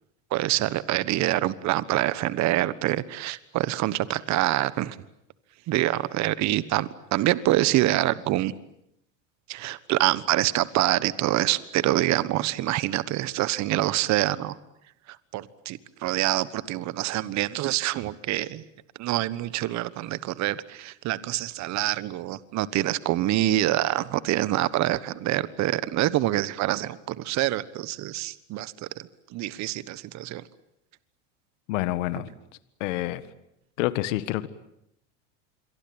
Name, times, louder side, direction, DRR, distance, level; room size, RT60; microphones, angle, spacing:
voice 1, 0.3-5.0 5.7-8.5 9.5-14.6 15.1-18.6 19.0-30.4, right 15 dB, 45° right, 16 dB, 1.3 m, -26 dB
voice 2, 31.7-32.3 32.8-33.2 33.8-34.5, left 16 dB, 75° left, 14 dB, 1.7 m, -27 dB
27.5 x 23.5 x 8.9 m, 0.77 s
supercardioid pair, 110°, 37 cm